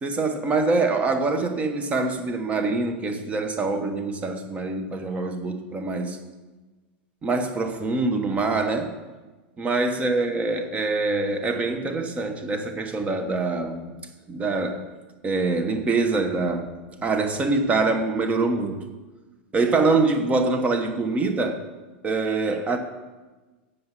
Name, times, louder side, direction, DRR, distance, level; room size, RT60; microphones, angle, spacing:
voice 1, 0.0-6.2 7.2-8.9 9.6-13.9 14.3-14.8 15.2-16.7 17.0-18.8 19.5-21.6 22.0-22.8, right 3 dB, 25° right, 6 dB, 1.3 m, -24 dB
7.7 x 6.8 x 7.4 m, 1.2 s
hypercardioid pair, 115°, 6 cm